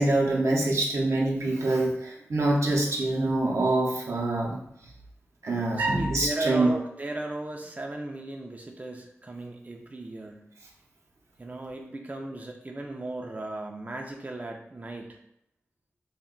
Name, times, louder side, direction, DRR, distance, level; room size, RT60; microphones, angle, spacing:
voice 1, 0.0-4.6 5.4-6.7, right 2 dB, 75° right, -2 dB, 0.6 m, -25 dB
voice 2, 5.8-10.5 11.4-15.2, right 2 dB, 30° right, 2 dB, 0.4 m, -36 dB
2.3 x 2.1 x 3.6 m, 0.77 s
cardioid pair, 45°, 5 cm